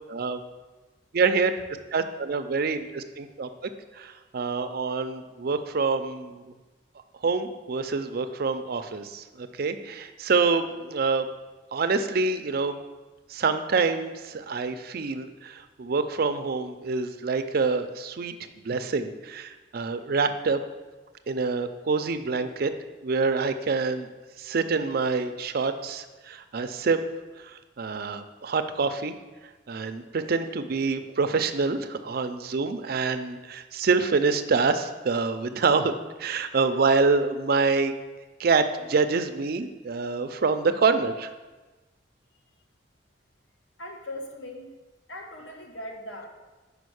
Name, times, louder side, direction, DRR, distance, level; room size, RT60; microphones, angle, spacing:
voice 1, 0.1-0.4 1.1-1.5 1.9-3.5 3.9-6.4 7.2-11.3 11.7-12.8 13.3-18.4 18.6-20.6 21.3-22.7 23.0-24.1 24.4-27.0 27.4-29.1 29.7-37.9 38.4-41.3, right 4 dB, 55° right, 9 dB, 0.5 m, -26 dB
voice 2, 43.8-44.7 45.1-46.3, left 1 dB, 85° left, 2 dB, 1.1 m, -39 dB
5.2 x 5.1 x 6.4 m, 1.2 s
head